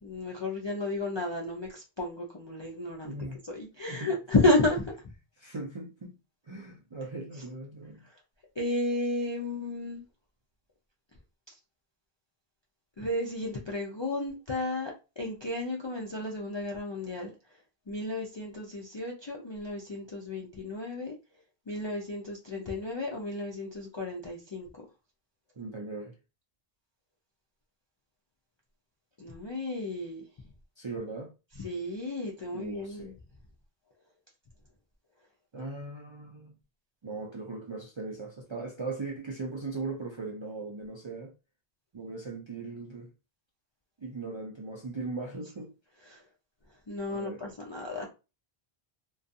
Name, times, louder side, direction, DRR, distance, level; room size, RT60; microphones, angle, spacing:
voice 1, 0.0-3.2 3.4-5.0 8.0-8.2 8.6-10.0 13.0-17.3 17.9-21.1 21.7-24.8 29.2-30.2 31.6-33.1 46.1-46.2 46.9-48.1, left 2 dB, 45° left, 0.3 m, -32 dB
voice 2, 3.0-3.4 3.9-4.1 5.4-6.2 6.4-8.0 25.6-26.1 30.8-31.3 32.5-33.1 35.5-36.5 37.0-41.3 41.9-43.1 44.0-45.7 47.1-47.4, right 3 dB, 45° right, 0.4 m, -39 dB
2.4 x 2.3 x 2.6 m
omnidirectional pair, 1.1 m